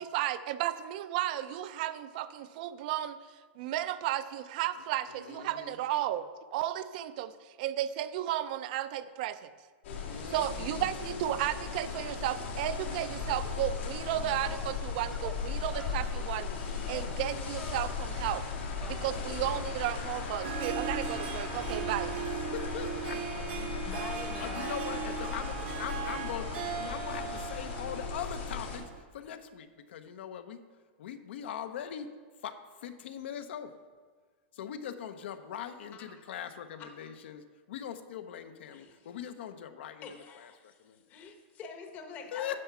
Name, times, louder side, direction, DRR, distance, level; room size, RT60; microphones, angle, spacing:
voice 1, 0.0-3.2 3.6-9.5 10.3-18.4 18.9-22.3, right 13 dB, 45° right, 14 dB, 0.4 m, -34 dB
voice 2, 5.1-5.8 10.0-10.9 19.0-19.5 22.2-24.1 24.4-30.6 31.0-32.1 32.4-33.8 34.5-41.0 42.3-42.5, left 9 dB, 70° left, 9 dB, 0.7 m, -41 dB
sound 1, 9.8-28.8, left 5 dB, 85° left, 2.3 m, -37 dB
sound 2, 14.4-14.7 15.1-15.4 15.7-16.1 16.8-17.1 17.4-18.1 18.8-19.3, equal, ahead, 0.6 m, -47 dB
Harp, 20.3-29.0, right 9 dB, 65° right, 1.0 m, -38 dB
voice 3, 23.8-24.8 25.1-25.4 35.9-36.1 36.8-36.9 38.7-39.1 40.0-42.5, left 5 dB, 25° left, 5 dB, 0.9 m, -46 dB
9.7 x 5.6 x 5.8 m, 1.5 s
supercardioid pair, 160°, 6 cm